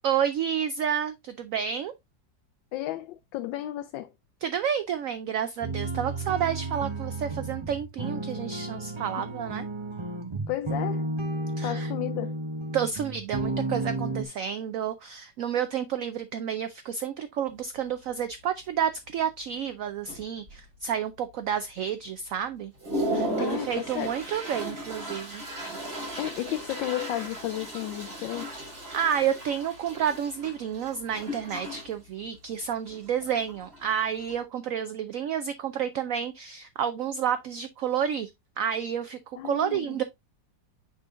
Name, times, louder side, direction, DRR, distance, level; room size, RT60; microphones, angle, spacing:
voice 1, 0.0-1.9 4.4-9.7 11.6-11.9 12.7-22.7 23.1-25.4 28.9-38.3 38.6-39.2 39.4-40.0, right 8 dB, 75° right, 0.7 m, -30 dB
voice 2, 2.7-4.1 9.2-9.3 10.5-11.1 11.6-12.4 23.4-24.2 26.2-28.6 39.3-40.0, left 14 dB, 80° left, 1.3 m, -33 dB
sound 1, 5.6-14.2, right 2 dB, 30° right, 0.5 m, -32 dB
Toilet flush, 17.5-17.6 18.1-18.3 18.6-19.2 19.7-19.8 20.1-20.8 21.3-21.4 21.9-22.0 22.5-34.4, right 1 dB, 50° right, 5.9 m, -36 dB
9.7 x 4.1 x 2.5 m
omnidirectional pair, 2.0 m